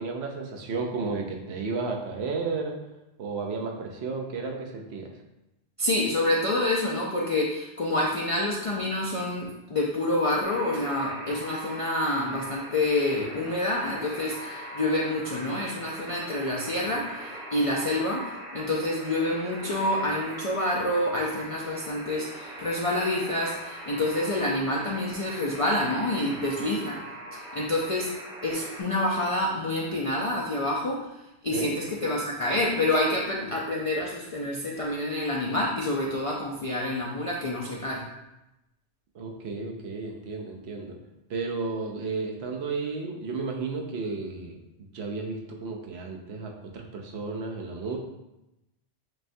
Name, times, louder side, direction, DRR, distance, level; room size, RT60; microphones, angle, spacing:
voice 1, 0.0-2.7 3.2-5.1 31.5-31.7 39.1-41.0 41.3-44.6 44.9-48.0, right 4 dB, 70° right, 1 dB, 0.9 m, -33 dB
voice 2, 5.8-27.0 27.3-28.1 28.4-38.0, left 1 dB, 55° left, -3 dB, 0.3 m, -27 dB
Alarm, 10.4-28.8, equal, 35° right, 0.7 m, -41 dB
6.4 x 2.2 x 2.6 m, 0.93 s
omnidirectional pair, 1.2 m